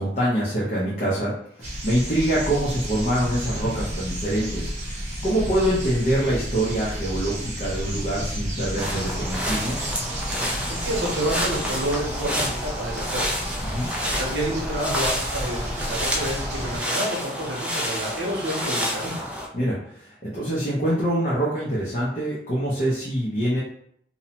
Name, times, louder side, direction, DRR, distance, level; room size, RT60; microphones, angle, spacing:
voice 1, 0.0-1.3 1.6-9.8 13.6-13.9 19.5-23.6, right 1 dB, 40° left, -7 dB, 0.6 m, -25 dB
sound 1, 1.6-16.8, equal, 40° right, 0.7 m, -32 dB
sound 2, 8.8-19.5, equal, 5° right, 0.3 m, -29 dB
voice 2, 10.7-13.5 14.0-15.6 15.9-19.2, right 1 dB, 85° right, -1 dB, 0.7 m, -29 dB
2.7 x 2.1 x 2.8 m, 0.69 s
head